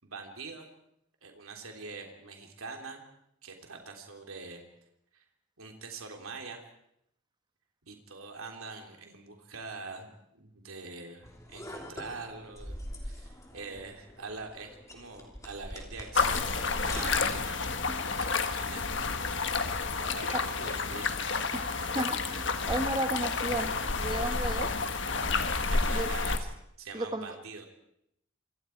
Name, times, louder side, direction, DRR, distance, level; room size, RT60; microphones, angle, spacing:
voice 1, 0.0-0.7 1.2-3.0 3.4-4.6 5.1-5.2 5.6-6.6 7.8-12.8 13.0-18.8 19.9-21.5 25.7-26.5 26.8-27.7, right 4 dB, 85° right, 3 dB, 3.4 m, -44 dB
sound 1, 11.2-18.3, left 1 dB, 15° left, 3.2 m, -44 dB
sound 2, 16.1-26.4, left 4 dB, 60° left, 1.5 m, -30 dB
voice 2, 21.5-24.7 25.9-26.1 26.9-27.3, right 1 dB, 20° right, 7 dB, 1.4 m, -34 dB
26.5 x 24.5 x 4.7 m, 0.75 s
head